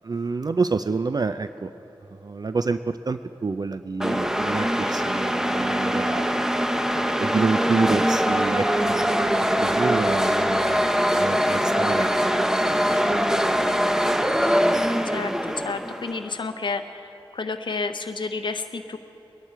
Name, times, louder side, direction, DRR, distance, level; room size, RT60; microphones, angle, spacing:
voice 1, 0.0-1.7 2.1-6.3 6.9-9.3 9.6-12.8 13.1-13.2, right 4 dB, 45° right, 11 dB, 0.4 m, -28 dB
sound 1, 4.0-16.3, equal, 5° right, 0.8 m, -23 dB
voice 2, 15.1-16.8 17.3-19.0, left 4 dB, 60° left, 7 dB, 0.7 m, -30 dB
21.0 x 11.0 x 4.5 m, 2.9 s
cardioid pair, 50°, 9 cm